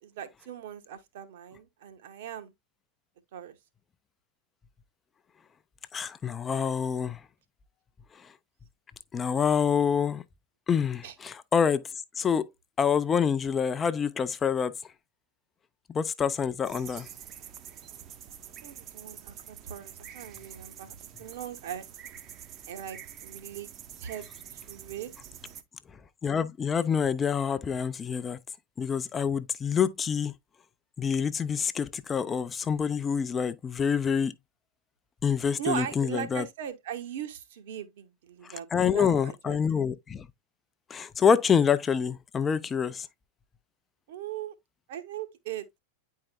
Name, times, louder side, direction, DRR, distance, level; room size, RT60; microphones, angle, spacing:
voice 1, 0.0-2.5 3.3-3.6 11.0-11.1 18.6-21.8 22.7-23.7 24.0-24.3 24.5-25.1 35.6-39.6 44.1-44.5 44.9-45.8, right 9 dB, 55° right, 1.1 m, -39 dB
voice 2, 5.9-7.2 9.1-10.2 10.7-11.8 12.2-12.5 12.8-14.8 15.9-17.1 26.2-28.4 28.8-30.3 31.0-34.3 35.2-36.4 38.4-40.3 40.9-43.1, left 7 dB, 20° left, 0.5 m, -26 dB
sound 1, 16.6-25.6, right 9 dB, 35° right, 0.8 m, -46 dB
9.5 x 4.7 x 2.2 m
figure-of-eight pair, 90°, 0 cm